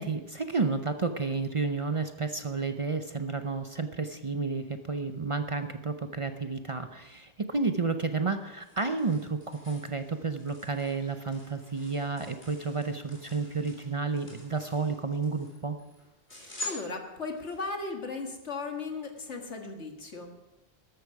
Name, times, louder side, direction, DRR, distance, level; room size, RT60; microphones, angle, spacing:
voice 1, 0.0-15.8, right 4 dB, 35° right, 8 dB, 0.6 m, -31 dB
sound 1, 8.1-17.6, left 2 dB, 60° left, 4.1 m, -47 dB
voice 2, 16.3-20.3, left 3 dB, 90° left, 3 dB, 2.0 m, -37 dB
13.5 x 12.5 x 4.8 m, 1.0 s
omnidirectional pair, 1.1 m